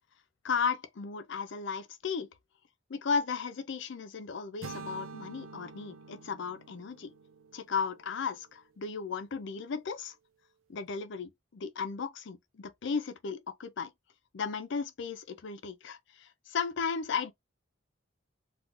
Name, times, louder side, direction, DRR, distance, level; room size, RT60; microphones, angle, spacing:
voice 1, 0.4-2.3 2.9-7.1 7.5-10.2 10.7-13.9 14.3-17.3, left 5 dB, 65° left, 0.5 m, -35 dB
sound 1, 4.6-8.6, right 4 dB, 80° right, 0.5 m, -47 dB
2.4 x 2.4 x 3.6 m
head